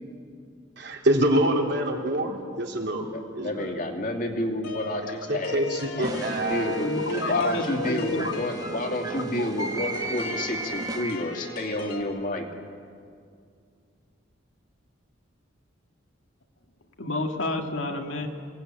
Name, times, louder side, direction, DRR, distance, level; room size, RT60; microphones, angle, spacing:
voice 1, 0.8-3.1 3.3-3.7 5.3-6.8 7.1-7.3, right 1 dB, 55° right, 1 dB, 3.3 m, -26 dB
voice 2, 3.1-6.9 7.3-12.5, left 1 dB, 45° left, 3 dB, 2.6 m, -30 dB
sound 1, 4.6-12.0, left 2 dB, 90° left, 4.0 m, -37 dB
sound 2, 6.0-11.5, right 2 dB, 20° right, 1.3 m, -35 dB
voice 3, 6.8-8.2 9.4-9.7 17.0-18.3, left 2 dB, 75° left, 3 dB, 2.3 m, -29 dB
26.5 x 18.0 x 9.1 m, 2.3 s
head